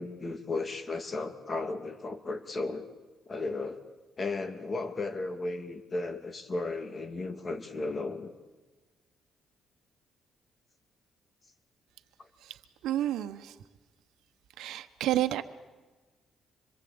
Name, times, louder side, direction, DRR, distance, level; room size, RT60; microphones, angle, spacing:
voice 1, 0.0-2.9 3.3-3.8 4.2-8.3, left 3 dB, 35° left, 7 dB, 2.6 m, -35 dB
voice 2, 12.4-13.6 14.6-15.4, right 13 dB, 85° right, 9 dB, 1.1 m, -31 dB
26.0 x 22.5 x 8.8 m, 1.3 s
cardioid pair, 90°, 0 cm